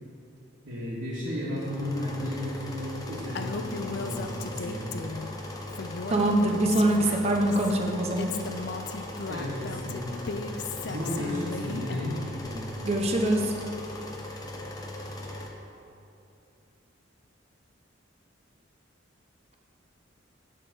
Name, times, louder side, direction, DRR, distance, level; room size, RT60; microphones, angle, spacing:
voice 1, 0.7-5.0 9.3-10.3 10.8-12.7, left 1 dB, 65° right, -10 dB, 1.8 m, -34 dB
sound 1, 1.6-15.5, left 1 dB, 20° left, 0.8 m, -39 dB
Female speech woman speaking, 3.3-5.3 5.7-7.7 8.2-12.3, left 4 dB, 55° left, 0.4 m, -36 dB
voice 2, 6.1-8.3 12.8-13.5, right 1 dB, 30° right, 2 dB, 0.8 m, -24 dB
9.7 x 3.9 x 6.9 m, 2.7 s
head